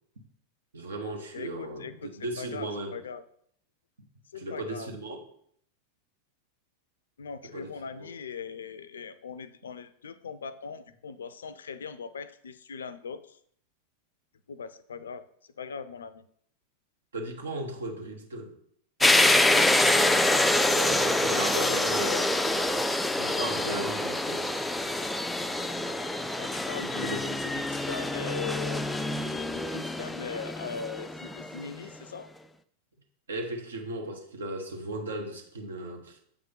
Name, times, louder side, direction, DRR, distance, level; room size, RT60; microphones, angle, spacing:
voice 1, 0.7-3.0 4.3-5.2 7.5-7.7 7.9-8.1 17.1-18.5 20.7-22.2 23.1-24.5 26.8-27.4 33.3-36.2, right 1 dB, 70° right, 3 dB, 1.2 m, -37 dB
voice 2, 1.3-2.1 2.4-3.2 4.3-4.9 7.2-13.4 14.5-15.2 15.6-16.2 20.7-22.3 26.4-28.8 29.5-32.3, left 6 dB, 65° left, 14 dB, 0.4 m, -40 dB
sound 1, 19.0-31.7, left 1 dB, 5° left, 0.4 m, -26 dB
7.3 x 3.7 x 5.4 m, 0.65 s
figure-of-eight pair, 90°, 0 cm